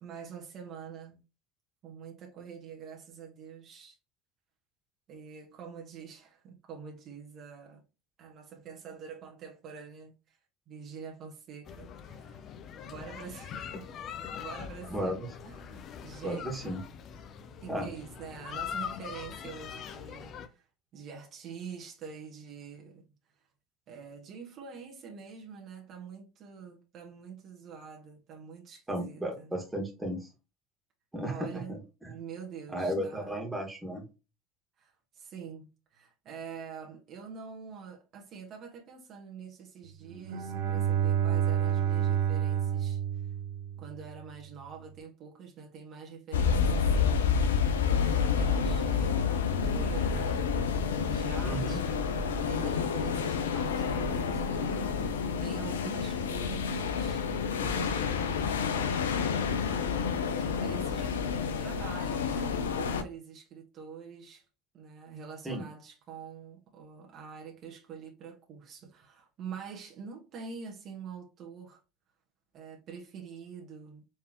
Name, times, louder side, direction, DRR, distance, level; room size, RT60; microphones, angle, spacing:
voice 1, 0.0-1.2 1.8-4.0 5.1-7.8 8.2-10.4 10.7-12.5 12.8-13.9 14.3-16.7 17.6-20.7 20.9-23.0 23.9-29.5 31.3-31.8 32.1-33.4 34.8-43.3 43.8-47.4 48.1-50.5 50.8-51.9 52.3-59.3 60.3-61.1 61.4-64.5 64.7-71.8 72.5-74.0, right 6 dB, 50° right, 1.4 m, -45 dB
sound 1, 11.7-20.5, left 8 dB, 50° left, 0.7 m, -42 dB
voice 2, 14.9-15.3 16.2-16.8 17.7-17.9 28.9-30.3 31.1-32.1 32.7-34.0 51.4-51.8 65.4-65.6, right 1 dB, 10° right, 1.8 m, -34 dB
Bowed string instrument, 40.1-44.2, right 9 dB, 75° right, 0.7 m, -29 dB
sound 2, 46.3-63.0, left 6 dB, 90° left, 0.6 m, -29 dB
4.5 x 3.4 x 3.0 m
hypercardioid pair, 80°, 0 cm